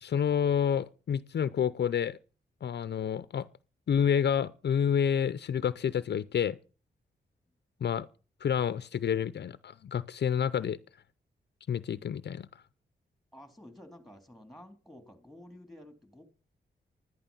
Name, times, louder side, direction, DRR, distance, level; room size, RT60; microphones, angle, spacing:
voice 1, 0.0-2.2 2.6-3.5 3.9-6.6 7.8-8.1 8.4-10.8 11.7-12.5, left 8 dB, 65° left, 0.6 m, -29 dB
voice 2, 13.3-16.2, left 1 dB, ahead, 3.4 m, -51 dB
11.0 x 11.0 x 5.5 m
cardioid pair, 60°, 19 cm